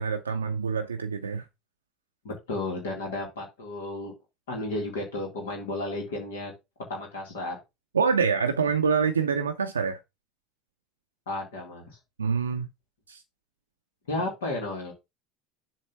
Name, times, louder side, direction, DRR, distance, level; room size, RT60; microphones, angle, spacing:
voice 1, 0.0-1.4 7.9-10.0 12.2-12.7 13.1-13.2, right 5 dB, 85° right, 0.5 m, -26 dB
voice 2, 2.2-4.1 4.5-6.5 6.9-7.6 11.3-11.9 14.1-14.9, left 2 dB, 75° left, 2.2 m, -33 dB
7.4 x 3.2 x 5.7 m
figure-of-eight pair, 65°, 0 cm